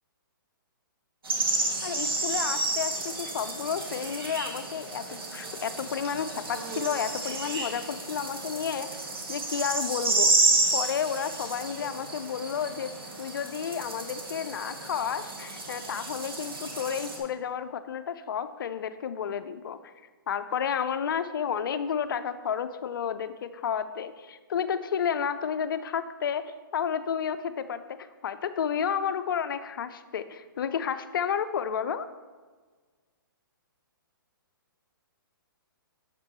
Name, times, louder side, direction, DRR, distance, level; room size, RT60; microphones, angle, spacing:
sound 1, 1.2-17.2, right 3 dB, 85° right, 1.6 m, -31 dB
voice 1, 1.8-10.5 10.7-12.9 13.2-19.9 20.3-26.4 26.7-27.8 28.2-32.1, left 7 dB, 65° left, 11 dB, 0.5 m, -31 dB
6.6 x 5.1 x 4.4 m, 1.4 s
hypercardioid pair, 140°, 12 cm